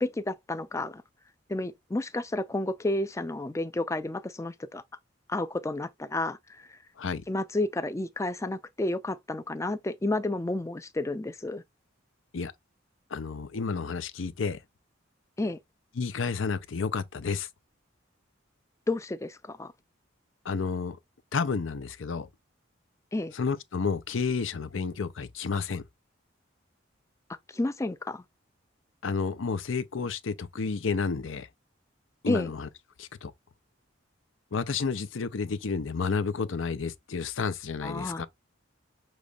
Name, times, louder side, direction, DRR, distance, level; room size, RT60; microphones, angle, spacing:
voice 1, 0.0-1.0 1.5-4.8 5.3-6.8 7.3-11.6 15.4-15.6 18.9-19.7 23.1-23.3 27.5-28.2 32.3-32.5 37.8-38.2, left 2 dB, 15° left, 0.4 m, -31 dB
voice 2, 13.1-14.6 16.0-17.5 20.4-21.0 21.3-22.3 23.3-25.8 29.0-31.5 32.2-32.7 33.0-33.3 34.5-38.3, left 5 dB, 75° left, 0.6 m, -31 dB
6.7 x 3.1 x 2.4 m
head